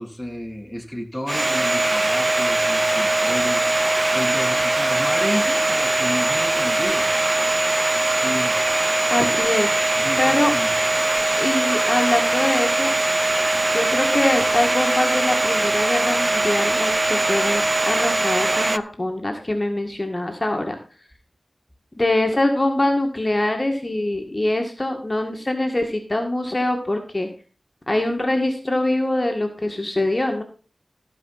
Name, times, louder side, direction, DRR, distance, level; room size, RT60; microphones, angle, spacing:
voice 1, 0.0-3.7 4.1-7.1 8.0-8.5 9.2-9.3 10.0-10.7, left 1 dB, 5° left, 2.1 m, -31 dB
Domestic sounds home sounds, 1.3-18.8, right 2 dB, 40° right, 0.4 m, -21 dB
voice 2, 9.1-9.9 10.2-10.5 11.4-12.9 13.7-20.8 22.0-27.3 27.9-30.4, left 1 dB, 30° left, 1.8 m, -23 dB
14.5 x 5.0 x 5.7 m
wide cardioid pair, 60°, 0 cm